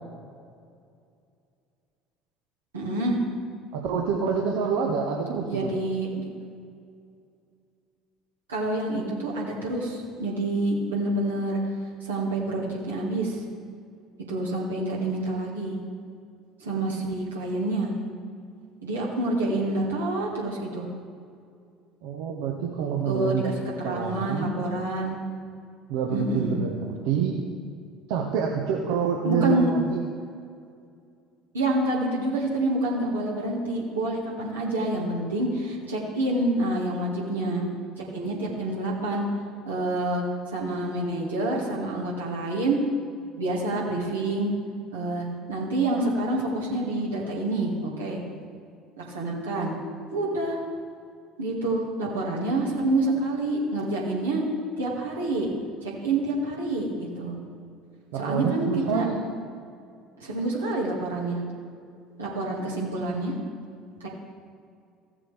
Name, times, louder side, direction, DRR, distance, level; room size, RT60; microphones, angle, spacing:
voice 1, 2.7-3.2 5.5-6.3 8.5-11.6 12.0-13.4 14.3-15.8 16.6-17.9 18.8-20.8 23.1-23.5 23.8-25.2 26.1-26.6 29.2-29.7 31.5-37.7 38.1-39.2 39.6-40.2 40.5-42.8 43.4-44.5 44.9-48.2 49.0-49.8 50.1-50.6 51.4-54.4 54.8-55.5 55.8-57.4 58.1-59.1 60.2-61.4 62.2-63.3 64.0-64.1, right 2 dB, 80° right, -4 dB, 2.0 m, -27 dB
voice 2, 3.7-5.7 22.0-23.5 23.8-24.5 25.9-27.4 28.1-30.0 58.1-59.2, right 6 dB, 65° right, -1 dB, 0.9 m, -27 dB
15.5 x 7.4 x 3.4 m, 2.3 s
figure-of-eight pair, 60°, 0 cm